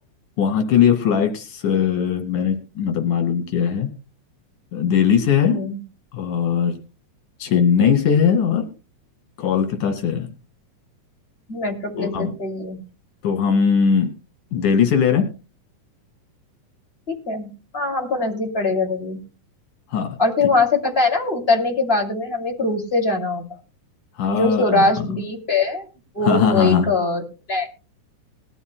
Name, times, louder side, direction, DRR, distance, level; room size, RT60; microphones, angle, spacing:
voice 1, 0.4-3.9 4.7-5.6 6.1-6.8 7.4-8.7 9.4-10.3 11.9-12.3 13.2-14.1 14.5-15.2 19.9-20.2 24.2-24.9 26.2-26.9, left 7 dB, 75° left, 5 dB, 3.5 m, -19 dB
voice 2, 5.4-5.8 11.5-12.8 17.1-19.2 20.2-23.4 24.3-25.9 26.1-27.2 27.5-27.7, left 3 dB, 20° left, 1 dB, 2.2 m, -22 dB
20.5 x 13.0 x 2.2 m, 0.33 s
omnidirectional pair, 3.7 m